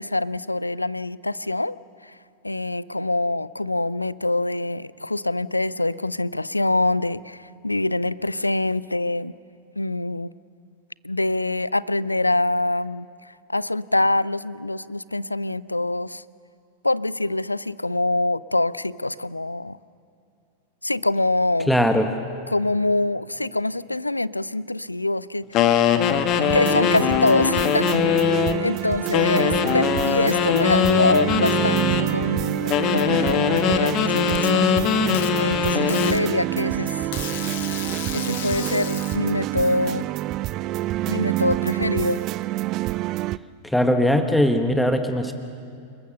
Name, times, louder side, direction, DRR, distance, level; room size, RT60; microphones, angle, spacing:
voice 1, 0.0-1.8 2.0-2.2 2.4-9.3 9.8-10.3 11.0-13.1 13.5-16.2 16.8-19.8 20.8-21.7 22.5-25.7 26.5-28.2 28.6-35.0 35.4-37.1 38.1-40.1 41.1-42.3, left 2 dB, 85° left, 20 dB, 0.5 m, -25 dB
voice 2, 21.7-22.1 43.6-45.3, equal, 5° left, 6 dB, 1.5 m, -20 dB
sound 1, 25.5-28.6 29.1-32.1 32.7-36.2, left 7 dB, 35° left, 1.7 m, -21 dB
sound 2, 26.5-43.4, right 16 dB, 35° right, 0.5 m, -27 dB
Packing tape duct tape, 33.5-34.5 35.1-35.3 35.9-36.2 37.1-39.2, left 12 dB, 55° left, 1.6 m, -34 dB
29.0 x 21.0 x 6.8 m, 2.5 s
figure-of-eight pair, 90°, 0 cm